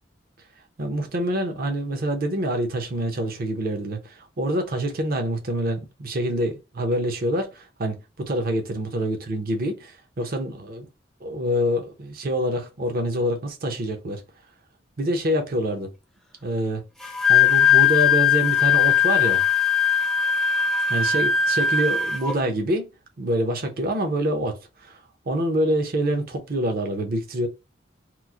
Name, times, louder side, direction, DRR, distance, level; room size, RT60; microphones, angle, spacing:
voice 1, 0.8-10.9 11.2-14.2 15.0-15.9 16.4-16.8 17.3-19.4 20.9-22.9 23.2-25.0 25.3-27.5, equal, 50° right, 0.7 m, -26 dB
Wind instrument woodwind instrument, 17.0-22.3, left 8 dB, ahead, 0.4 m, -19 dB
3.0 x 2.0 x 3.6 m
head